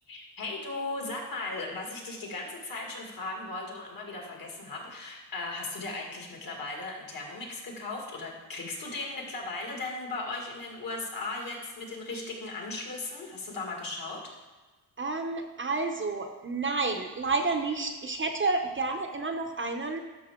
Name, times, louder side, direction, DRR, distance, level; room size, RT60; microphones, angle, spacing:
voice 1, 0.1-14.2, left 2 dB, 55° left, 0 dB, 2.3 m, -37 dB
voice 2, 15.0-20.0, right 3 dB, 30° right, 4 dB, 0.8 m, -30 dB
12.0 x 5.6 x 3.7 m, 1.2 s
cardioid pair, 95°, 40 cm